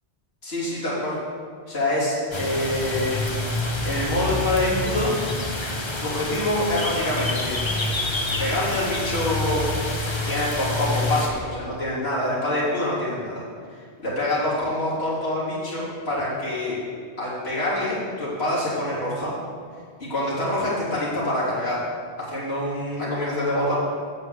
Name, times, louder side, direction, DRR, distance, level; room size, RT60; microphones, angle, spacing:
voice 1, 0.4-1.2 1.7-3.2 3.8-5.1 6.0-7.6 8.4-9.7 10.0-13.4 14.0-16.8 17.2-19.3 20.0-21.8 22.2-23.7, left 1 dB, 65° left, -8 dB, 3.4 m, -26 dB
sound 1, 2.3-11.3, left 2 dB, 25° left, 0.9 m, -27 dB
8.4 x 5.4 x 7.7 m, 2.1 s
omnidirectional pair, 1.1 m